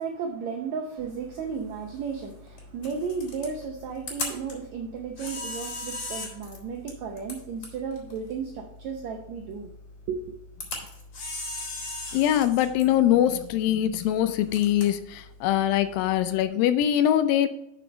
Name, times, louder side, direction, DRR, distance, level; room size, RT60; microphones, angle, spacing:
voice 1, 0.0-9.7 10.1-10.3, right 6 dB, 80° right, 1.6 m, -34 dB
Camera, 1.0-16.5, left 2 dB, 35° left, 4.2 m, -40 dB
voice 2, 12.1-17.5, left 11 dB, 80° left, 2.2 m, -23 dB
6.9 x 6.7 x 5.1 m
omnidirectional pair, 4.3 m